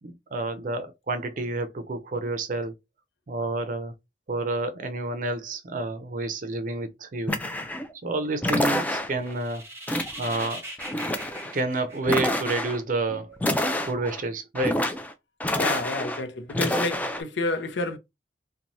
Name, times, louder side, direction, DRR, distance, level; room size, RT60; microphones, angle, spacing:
voice 1, 0.0-2.7 3.3-3.9 4.3-7.4 8.0-9.6 10.2-10.6 11.5-13.4 13.8-14.8, right 2 dB, 50° right, 0.5 m, -29 dB
sound 1, 7.3-7.9 8.4-9.3 9.9-10.5 10.8-11.5 12.0-12.8 13.4-14.2 14.6-15.1 15.4-16.2 16.5-17.2, left 1 dB, 10° left, 0.3 m, -27 dB
sound 2, 9.1-12.7, right 1 dB, 15° right, 0.8 m, -40 dB
voice 2, 15.6-18.0, left 3 dB, 90° left, 0.6 m, -29 dB
2.6 x 2.2 x 2.9 m
head